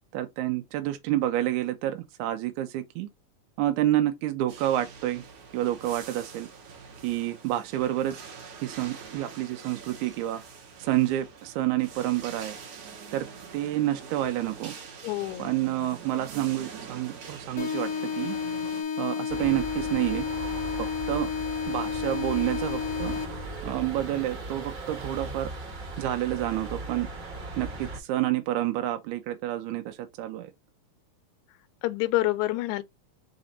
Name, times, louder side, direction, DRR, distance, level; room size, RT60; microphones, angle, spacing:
voice 1, 0.1-3.1 3.6-5.2 5.5-6.5 7.0-8.2 8.6-10.4 10.8-12.6 13.1-13.3 13.5-14.7 15.4-17.9 18.2-18.4 19.0-20.3 20.8-21.3 21.7-23.2 23.6-25.5 26.0-27.1 27.6-30.5, right 14 dB, 75° right, 1.9 m, -29 dB
sound 1, 4.5-18.8, right 6 dB, 60° right, 2.1 m, -44 dB
voice 2, 15.0-15.5 31.8-32.8, left 17 dB, 80° left, 1.8 m, -27 dB
sound 2, 17.6-23.6, left 6 dB, 60° left, 1.7 m, -31 dB
sound 3, 19.3-28.0, right 2 dB, 45° right, 1.7 m, -38 dB
5.1 x 2.6 x 4.1 m
omnidirectional pair, 3.7 m